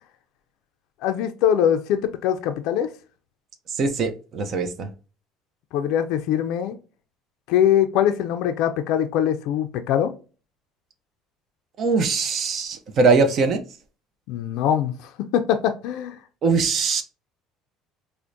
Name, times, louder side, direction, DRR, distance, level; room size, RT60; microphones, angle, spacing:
voice 1, 1.0-2.9 5.7-6.8 7.5-10.1 14.3-16.2, left 9 dB, 75° left, 0.4 m, -22 dB
voice 2, 3.7-4.9 11.8-13.6 16.4-17.0, right 4 dB, 45° right, 0.6 m, -21 dB
4.4 x 2.1 x 2.6 m
cardioid pair, 125°, 0 cm